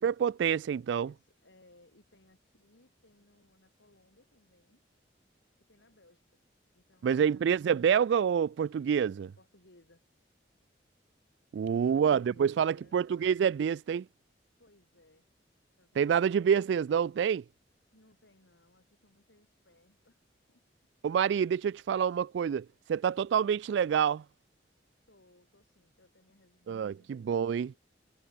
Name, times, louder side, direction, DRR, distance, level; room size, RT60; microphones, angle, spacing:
voice 1, 0.0-1.1 7.0-9.3 11.5-14.0 16.0-17.4 21.0-24.2 26.7-27.7, right 7 dB, 75° right, 0.3 m, -27 dB
voice 2, 1.0-4.8 5.7-6.2 6.7-7.7 9.2-10.0 11.5-13.0 14.6-15.3 15.8-16.2 17.9-20.2 20.5-20.6 25.1-27.1, left 1 dB, 85° left, 5.5 m, -64 dB
head